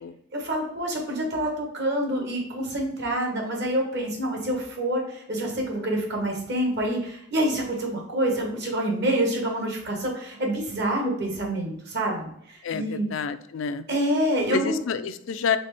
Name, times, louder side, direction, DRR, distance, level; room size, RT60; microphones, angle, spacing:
voice 1, 0.3-13.1 13.9-14.8, right 1 dB, 60° right, 1 dB, 1.3 m, -27 dB
voice 2, 12.6-13.8 14.5-15.6, left 6 dB, 70° left, 12 dB, 0.4 m, -28 dB
4.1 x 3.6 x 3.4 m, 0.74 s
head